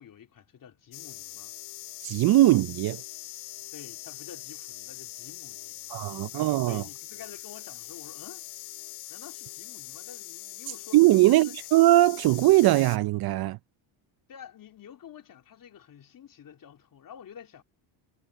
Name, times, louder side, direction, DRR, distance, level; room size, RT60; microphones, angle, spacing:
voice 1, 0.0-1.5 3.7-8.4 9.1-11.0 11.3-11.5 14.3-17.6, left 9 dB, 45° left, 3.5 m, -49 dB
sound 1, 0.9-13.0, left 16 dB, 65° left, 1.5 m, -42 dB
voice 2, 2.0-3.0 5.9-6.8 10.9-13.6, right 16 dB, 50° right, 0.6 m, -20 dB
cardioid pair, 110°, 48 cm